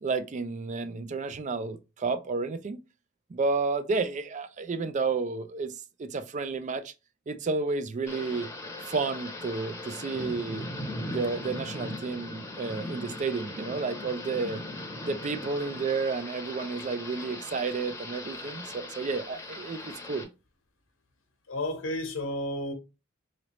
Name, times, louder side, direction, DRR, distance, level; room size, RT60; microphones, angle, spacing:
voice 1, 0.0-2.8 3.3-5.7 6.0-6.9 7.3-8.5 8.9-10.7 11.0-14.6 15.0-20.3, right 4 dB, 35° right, 0.4 m, -31 dB
Thunder / Rain, 8.1-20.2, left 2 dB, 15° left, 0.8 m, -39 dB
voice 2, 21.5-22.7, left 1 dB, 80° left, 1.0 m, -32 dB
3.8 x 3.2 x 3.0 m
head